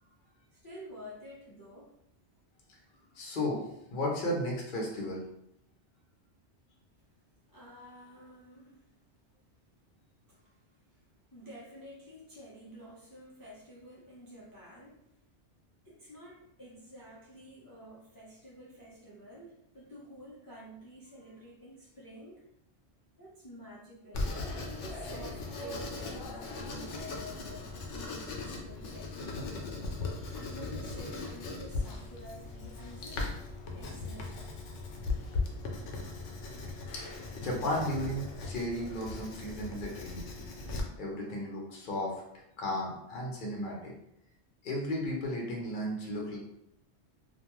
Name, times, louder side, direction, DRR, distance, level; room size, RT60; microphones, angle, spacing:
voice 1, 0.5-1.9 7.5-9.1 10.3-10.6 10.9-15.1 15.8-22.4 23.2-24.3 24.8-29.5 30.3-33.3 33.7-34.4, equal, 35° left, -7 dB, 0.3 m, -50 dB
voice 2, 3.1-5.2 36.9-40.3 41.0-42.2 42.6-43.9 44.6-46.4, left 1 dB, 55° left, -2 dB, 0.7 m, -34 dB
Writing, 24.1-40.8, left 3 dB, 90° left, 0.9 m, -38 dB
2.5 x 2.2 x 2.9 m, 0.77 s
omnidirectional pair, 1.2 m